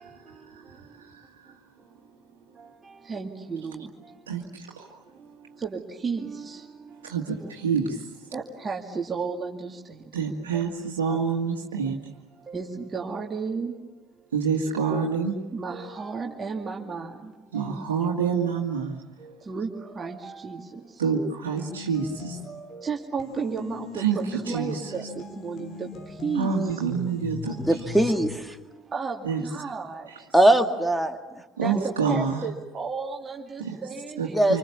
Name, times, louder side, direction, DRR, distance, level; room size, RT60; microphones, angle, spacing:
voice 1, 0.5-1.5 4.3-4.9 7.0-8.1 10.1-12.0 14.3-15.4 17.5-19.0 21.0-22.4 24.0-24.9 26.4-27.5 29.2-29.4 30.1-30.2 31.6-32.4 33.6-33.8 34.2-34.6, right 6 dB, 75° right, -2 dB, 2.1 m, -27 dB
voice 2, 2.8-3.9 5.6-6.6 8.3-10.0 10.5-10.6 11.1-11.2 12.5-13.7 15.5-17.7 19.2-20.6 22.4-25.0 25.4-25.9 26.2-26.5 28.9-30.1 31.6-34.4, right 5 dB, 25° right, 0 dB, 2.3 m, -33 dB
sound 1, 21.5-22.7 23.2-28.4, left 4 dB, 45° left, 3.0 m, -40 dB
voice 3, 27.6-28.6 30.3-31.2 34.3-34.6, right 1 dB, ahead, 5 dB, 2.2 m, -20 dB
28.0 x 25.5 x 7.1 m, 1.1 s
figure-of-eight pair, 60°, 0 cm